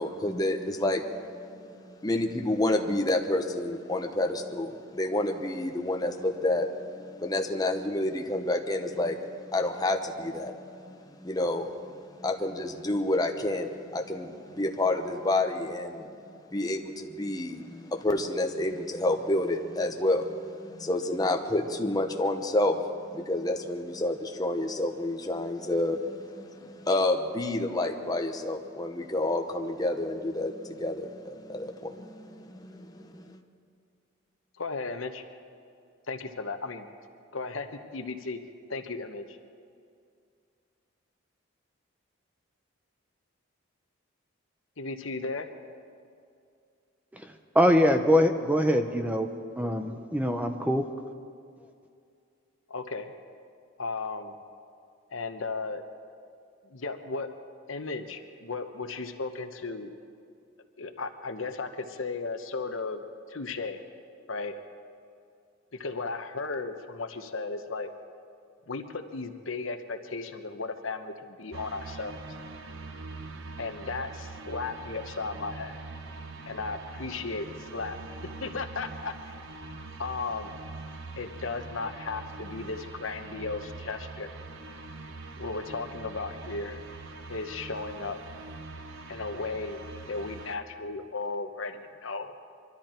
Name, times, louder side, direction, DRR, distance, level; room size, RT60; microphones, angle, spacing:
voice 1, 0.0-33.4, left 1 dB, 20° left, 3 dB, 0.9 m, -29 dB
voice 2, 34.6-35.2 36.1-36.9 37.3-38.4 38.7-39.4 44.8-45.5 52.7-53.1 53.8-54.4 55.1-55.8 56.7-57.3 57.7-59.9 60.8-63.0 63.3-63.8 64.3-64.5 65.7-67.9 68.7-72.2 73.6-75.8 76.5-78.0 78.4-79.3 80.0-80.6 81.2-84.3 85.4-86.8 87.3-88.2 89.1-89.8 90.1-92.3, left 3 dB, 70° left, 7 dB, 1.0 m, -35 dB
voice 3, 47.5-49.3 49.6-50.8, equal, 5° right, 6 dB, 0.6 m, -23 dB
sound 1, 71.5-90.6, right 3 dB, 75° right, 0.9 m, -43 dB
23.5 x 13.0 x 4.4 m, 2.4 s
head